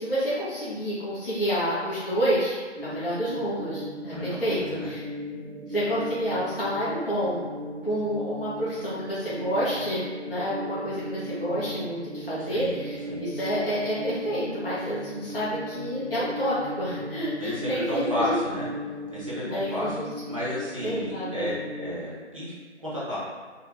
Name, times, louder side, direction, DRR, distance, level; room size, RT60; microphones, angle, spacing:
voice 1, 0.0-2.6 2.8-5.0 5.7-7.4 7.8-18.4 19.4-19.9 20.8-21.5, equal, 50° left, -10 dB, 1.0 m, -29 dB
sound 1, 2.8-22.0, equal, 70° right, 0.7 m, -37 dB
voice 2, 4.1-4.9 12.4-12.8 13.1-13.2 17.4-18.7 19.1-19.9 20.2-22.5 22.8-23.2, left 1 dB, 30° right, -10 dB, 0.8 m, -32 dB
3.4 x 2.2 x 3.2 m, 1.6 s
figure-of-eight pair, 175°, 36 cm